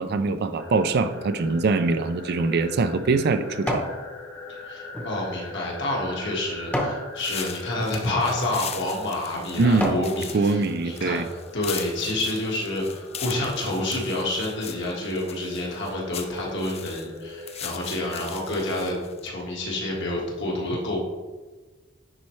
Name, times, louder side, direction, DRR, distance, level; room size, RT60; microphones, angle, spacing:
voice 1, 0.0-3.8 9.6-10.0 10.3-11.3, right 3 dB, 55° right, 10 dB, 0.4 m, -23 dB
sound 1, 0.6-19.1, left 2 dB, 80° left, 1.6 m, -43 dB
sound 2, 2.1-4.0 4.5-7.1 7.7-7.9 8.6-8.8 9.3-10.1 10.6-10.7, equal, 5° left, 0.9 m, -32 dB
voice 2, 4.6-19.0 19.2-21.0, left 1 dB, 60° left, -2 dB, 1.7 m, -28 dB
sound 3, 7.2-19.3, left 8 dB, 30° left, 0.4 m, -39 dB
9.9 x 4.2 x 3.2 m, 1.3 s
head